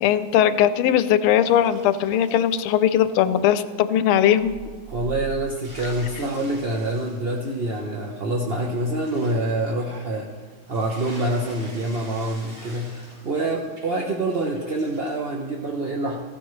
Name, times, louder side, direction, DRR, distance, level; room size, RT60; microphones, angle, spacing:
voice 1, 0.0-4.5, left 10 dB, 90° left, 13 dB, 1.5 m, -19 dB
sound 1, 1.4-4.0 4.3-4.4 4.9-5.0 5.3-15.3, right 1 dB, 85° right, 5.0 m, -46 dB
sound 2, 4.4-7.1, right 8 dB, 60° right, 1.3 m, -41 dB
voice 2, 4.9-10.3 10.7-16.2, right 1 dB, 45° right, -2 dB, 0.7 m, -26 dB
14.5 x 14.0 x 3.2 m, 1.4 s
omnidirectional pair, 2.3 m